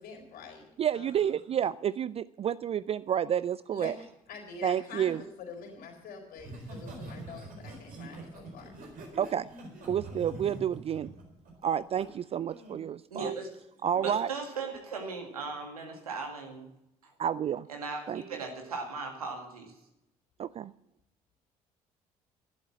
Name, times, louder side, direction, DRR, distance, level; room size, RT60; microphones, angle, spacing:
voice 1, 0.0-0.6 0.9-1.3 3.7-3.9 4.3-8.7, left 5 dB, 55° left, 2 dB, 4.2 m, -45 dB
voice 2, 0.8-3.9 4.6-5.2 9.2-9.5 9.9-11.1 11.6-13.3 13.8-14.3 17.2-17.7 18.1-18.2 20.4-20.7, right 9 dB, 35° right, 17 dB, 0.4 m, -30 dB
Laughter, 6.4-12.1 12.5-12.8, right 2 dB, 50° right, 4.2 m, -44 dB
voice 3, 13.1-13.5 13.9-16.7 17.0-17.1 17.7-19.7, right 4 dB, 80° right, 3 dB, 2.0 m, -38 dB
11.5 x 11.0 x 7.3 m, 0.84 s
figure-of-eight pair, 50°, 19 cm